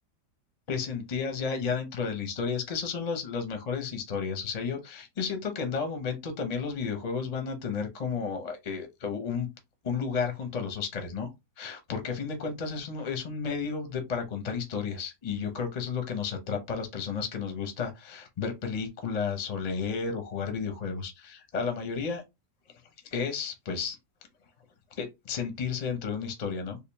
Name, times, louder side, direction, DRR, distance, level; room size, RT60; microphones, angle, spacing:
voice 1, 0.7-9.5 9.8-11.3 11.6-22.2 23.1-24.0 25.0-26.8, left 5 dB, 40° left, 0.5 m, -32 dB
3.7 x 2.4 x 3.3 m
omnidirectional pair, 1.8 m